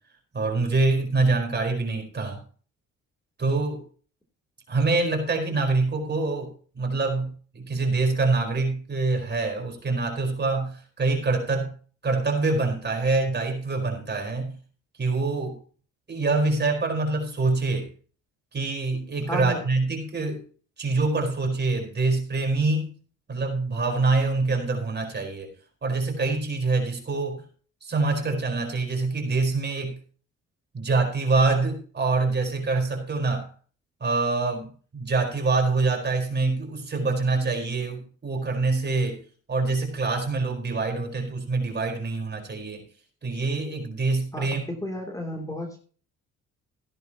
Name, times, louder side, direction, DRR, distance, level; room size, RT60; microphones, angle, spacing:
voice 1, 0.3-2.4 3.4-3.8 4.7-11.7 12.0-14.6 15.0-15.6 16.1-17.9 18.5-20.4 20.8-22.9 23.3-25.5 25.8-27.4 27.8-30.0 30.7-33.5 34.0-39.2 39.5-42.8 43.2-44.6, right 3 dB, 35° right, 3 dB, 4.6 m, -25 dB
voice 2, 19.3-19.7 44.3-45.8, equal, 10° left, 2 dB, 3.1 m, -33 dB
15.5 x 10.5 x 3.0 m, 0.41 s
cardioid pair, 90°, 30 cm